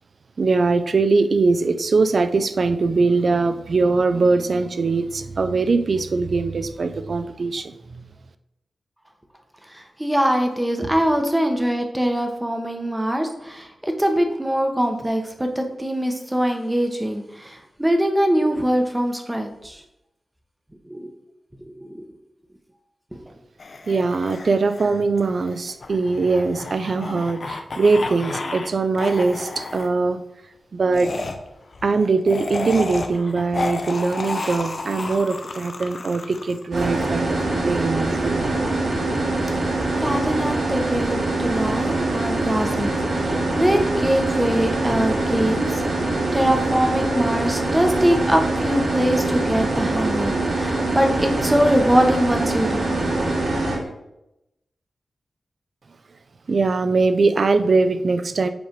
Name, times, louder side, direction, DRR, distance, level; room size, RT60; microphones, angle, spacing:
voice 1, 0.4-8.0 23.9-30.2 30.7-31.1 31.8-38.4 56.5-58.5, right 3 dB, 50° right, 11 dB, 0.4 m, -21 dB
voice 2, 10.0-19.8 20.9-21.1 21.8-22.0 40.0-42.9 43.1-53.2, equal, 10° right, 4 dB, 0.8 m, -22 dB
sound 1, 23.6-28.7 28.9-29.9 30.9-37.1, left 3 dB, 45° left, 0.6 m, -32 dB
sound 2, 36.7-53.8, right 2 dB, 75° right, 2.5 m, -23 dB
8.0 x 3.2 x 5.1 m, 0.88 s
wide cardioid pair, 165°, 0 cm